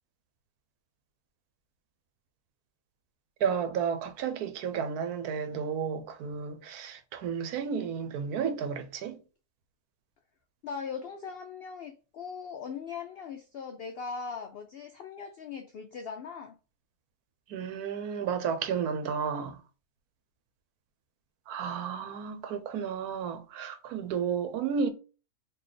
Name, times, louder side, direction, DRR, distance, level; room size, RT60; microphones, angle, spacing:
voice 1, 3.4-9.2 17.5-19.6 21.5-24.9, right 7 dB, 90° right, 1.2 m, -32 dB
voice 2, 10.6-16.6, left 5 dB, 80° left, 0.5 m, -40 dB
3.9 x 2.8 x 3.2 m
omnidirectional pair, 1.5 m